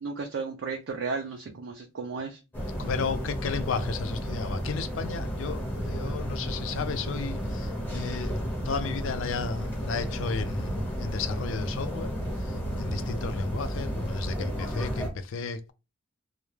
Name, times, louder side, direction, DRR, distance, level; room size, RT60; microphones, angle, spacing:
voice 1, 0.0-2.4, right 4 dB, 65° right, 0.4 m, -34 dB
sound 1, 2.5-15.1, equal, 10° left, 0.8 m, -32 dB
voice 2, 2.8-8.4 8.6-12.1 12.4-15.7, left 5 dB, 70° left, 0.4 m, -33 dB
2.3 x 2.0 x 3.1 m
head